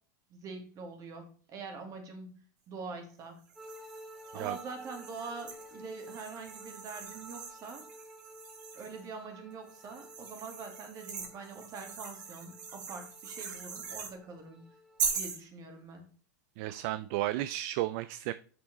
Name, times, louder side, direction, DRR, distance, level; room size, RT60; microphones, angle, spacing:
voice 1, 0.3-2.3 2.7-3.4 4.3-7.9 8.7-14.6 15.1-16.0, right 4 dB, 35° right, 5 dB, 2.3 m, -44 dB
sound 1, 3.5-9.1 9.7-14.1 15.0-15.4, right 6 dB, 80° right, 2.5 m, -41 dB
sound 2, 3.6-15.2, equal, 5° right, 1.9 m, -53 dB
voice 2, 16.6-18.3, right 15 dB, 55° right, 14 dB, 0.4 m, -33 dB
6.1 x 5.9 x 4.1 m, 0.42 s
hypercardioid pair, 125°, 10 cm